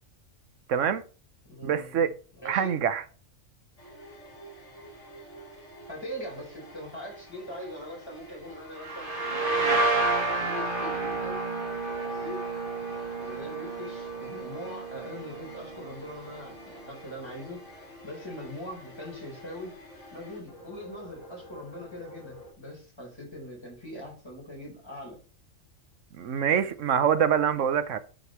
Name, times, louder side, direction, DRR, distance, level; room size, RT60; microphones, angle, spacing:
voice 1, 0.7-1.0 1.6-2.1 2.4-3.0 26.2-28.0, right 8 dB, 70° right, 1.1 m, -25 dB
voice 2, 1.5-2.7 5.9-9.8 10.2-11.4 12.0-12.4 13.2-17.6 18.0-19.8 20.1-25.2, equal, 20° left, 4.1 m, -42 dB
sound 1, 3.8-22.5, equal, 65° left, 4.3 m, -49 dB
sound 2, 8.8-16.3, right 2 dB, 40° right, 2.2 m, -30 dB
10.0 x 5.2 x 3.1 m
omnidirectional pair, 1.4 m